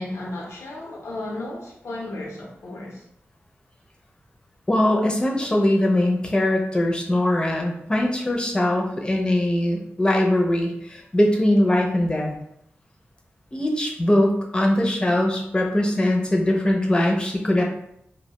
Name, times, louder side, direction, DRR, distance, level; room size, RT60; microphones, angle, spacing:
voice 1, 0.0-3.0, left 2 dB, 90° left, -3 dB, 0.7 m, -34 dB
voice 2, 4.7-12.3 13.5-17.6, left 1 dB, 20° left, 0 dB, 0.5 m, -21 dB
2.2 x 2.1 x 2.9 m, 0.77 s
wide cardioid pair, 100°, 4 cm